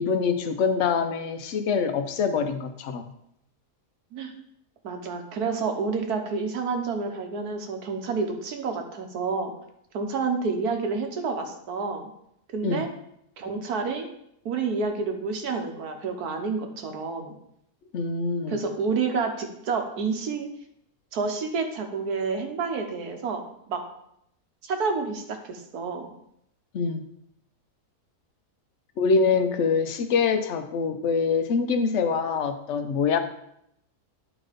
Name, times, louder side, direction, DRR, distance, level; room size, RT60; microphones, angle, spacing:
voice 1, 0.0-3.0 12.6-12.9 17.9-18.6 26.7-27.0 29.0-33.2, left 5 dB, 55° left, 8 dB, 0.9 m, -24 dB
voice 2, 4.8-9.5 9.9-12.1 12.5-12.9 13.4-14.1 14.4-17.3 18.5-20.5 21.1-23.4 23.7-23.8 24.6-26.1, right 4 dB, 80° right, 4 dB, 1.6 m, -29 dB
10.0 x 4.1 x 5.1 m, 0.75 s
omnidirectional pair, 1.6 m